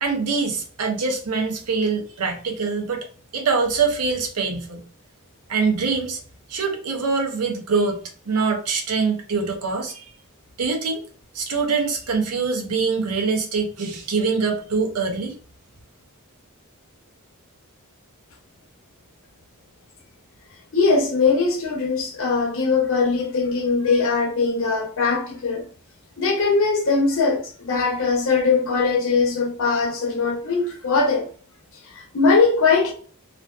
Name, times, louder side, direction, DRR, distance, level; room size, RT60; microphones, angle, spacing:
voice 1, 0.0-3.1 3.3-4.8 5.5-6.2 6.5-10.1 10.6-11.0 11.3-15.3, right 4 dB, 80° right, 0.7 m, -24 dB
voice 2, 20.7-25.7 26.2-31.3 31.8-32.9, left 4 dB, 65° left, 0.7 m, -21 dB
2.4 x 2.2 x 2.4 m
head